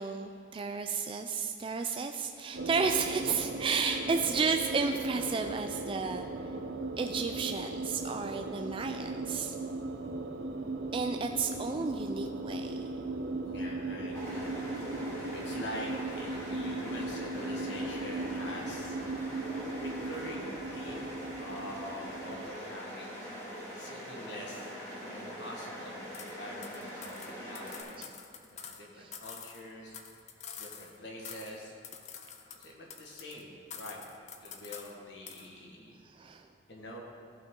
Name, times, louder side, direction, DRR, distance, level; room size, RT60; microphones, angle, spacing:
voice 1, 0.0-6.5 7.0-9.5 10.9-12.9 28.0-28.1 29.0-29.1 36.0-36.5, right 5 dB, 25° right, 5 dB, 0.3 m, -32 dB
sound 1, 2.5-22.5, right 2 dB, 60° right, 0.6 m, -38 dB
voice 2, 3.9-4.3 13.4-19.0 19.8-21.1 21.4-23.3 23.7-24.7 25.1-28.2 28.5-30.0 30.6-31.7 32.5-34.0 34.4-36.0 36.7-37.0, left 1 dB, 60° left, -2 dB, 1.5 m, -45 dB
sound 2, 14.1-27.8, equal, 15° left, 2.4 m, -43 dB
sound 3, 26.1-26.3 26.6-28.8 29.1-31.0 31.3-31.6 31.8-33.4 33.7-35.0 35.3-35.5, left 7 dB, 35° left, 0.6 m, -47 dB
14.5 x 5.8 x 3.7 m, 2.6 s
head